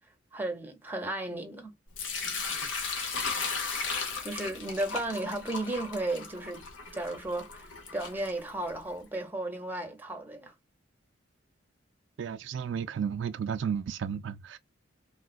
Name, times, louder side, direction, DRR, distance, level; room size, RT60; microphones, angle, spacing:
voice 1, 0.3-1.7 4.2-6.6 6.9-10.5, right 2 dB, 10° right, 0.8 m, -34 dB
Sink (filling or washing) / Liquid, 2.0-8.9, left 4 dB, 90° left, 1.0 m, -36 dB
voice 2, 12.2-14.6, right 7 dB, 70° right, 0.3 m, -33 dB
3.6 x 2.4 x 2.3 m
head